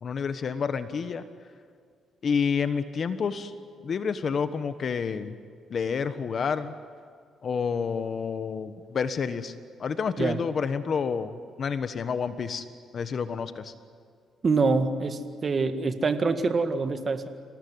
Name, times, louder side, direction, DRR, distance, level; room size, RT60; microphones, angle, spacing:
voice 1, 0.0-1.2 2.2-3.5 3.8-5.3 5.7-6.7 7.4-9.5 9.8-12.6 12.9-13.7, left 6 dB, 50° left, 11 dB, 1.3 m, -29 dB
voice 2, 14.4-17.3, right 4 dB, 40° right, 8 dB, 1.8 m, -25 dB
26.5 x 18.5 x 9.6 m, 2.1 s
cardioid pair, 90°, 0 cm